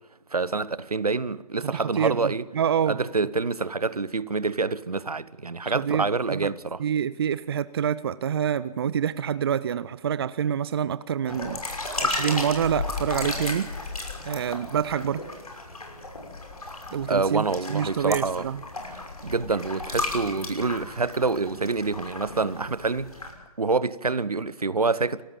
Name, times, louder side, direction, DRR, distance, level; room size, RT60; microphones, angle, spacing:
voice 1, 0.3-2.4 2.9-6.8 17.1-18.5 18.9-23.1 23.6-25.2, right 4 dB, 75° right, 1.0 m, -27 dB
voice 2, 1.6-3.0 5.6-6.5 6.8-11.6 12.0-13.9 14.3-15.2 16.9-18.6, right 8 dB, 40° right, 0.6 m, -27 dB
sound 1, 11.3-23.3, left 2 dB, 70° left, 6.0 m, -34 dB
28.5 x 14.0 x 7.4 m
figure-of-eight pair, 135°, 20 cm